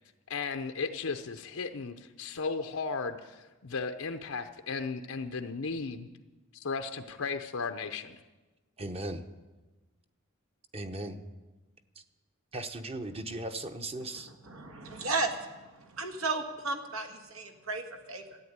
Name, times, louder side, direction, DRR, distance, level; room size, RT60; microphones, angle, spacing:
voice 1, 0.3-6.1 6.5-8.2, left 4 dB, 90° left, 6 dB, 0.7 m, -35 dB
voice 2, 8.8-9.3 10.7-11.2 12.5-14.3, right 2 dB, 30° right, 8 dB, 0.9 m, -37 dB
voice 3, 14.4-18.4, right 3 dB, 80° right, 6 dB, 1.7 m, -34 dB
13.5 x 8.8 x 9.5 m, 1.2 s
head